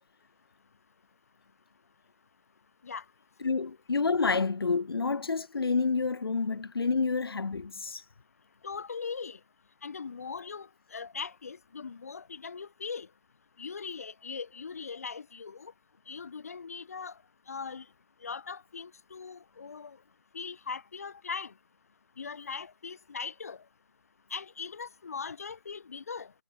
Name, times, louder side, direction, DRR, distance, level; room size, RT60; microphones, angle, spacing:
voice 1, 3.4-8.0, left 4 dB, 75° left, 0.4 m, -28 dB
voice 2, 8.6-9.4 9.8-13.1 13.6-15.7 16.1-17.2 17.5-17.9 18.2-20.0 20.3-21.5 22.2-23.6 24.3-26.3, left 5 dB, 40° left, 0.9 m, -40 dB
figure-of-eight pair, 155°, 12 cm